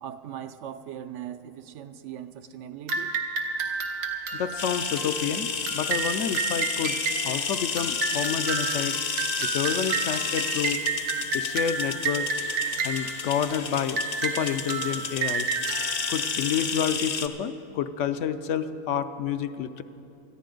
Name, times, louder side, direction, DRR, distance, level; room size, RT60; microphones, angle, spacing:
voice 1, 0.0-3.1, right 10 dB, 70° right, 10 dB, 0.9 m, -39 dB
sound 1, 2.9-17.0, right 5 dB, 90° right, 1.5 m, -31 dB
voice 2, 4.3-7.0 7.2-9.0 9.4-10.8 11.3-12.3 12.8-15.5 16.1-19.8, left 8 dB, 70° left, 10 dB, 0.9 m, -29 dB
sound 2, 4.6-17.3, left 5 dB, 45° left, 0.5 m, -31 dB
19.5 x 14.0 x 3.8 m, 2.8 s
omnidirectional pair, 1.3 m